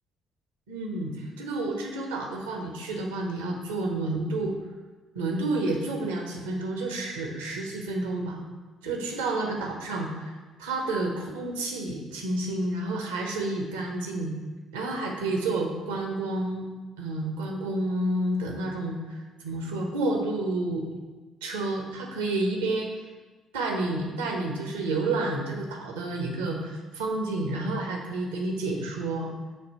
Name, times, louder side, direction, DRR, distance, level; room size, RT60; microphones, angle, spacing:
voice 1, 0.7-4.6 5.1-8.4 8.8-14.3 14.7-16.7 17.0-20.9 21.4-23.0 23.5-29.3, right 2 dB, 70° right, 1 dB, 0.8 m, -30 dB
6.8 x 2.7 x 5.4 m, 1.3 s
figure-of-eight pair, 45°, 0 cm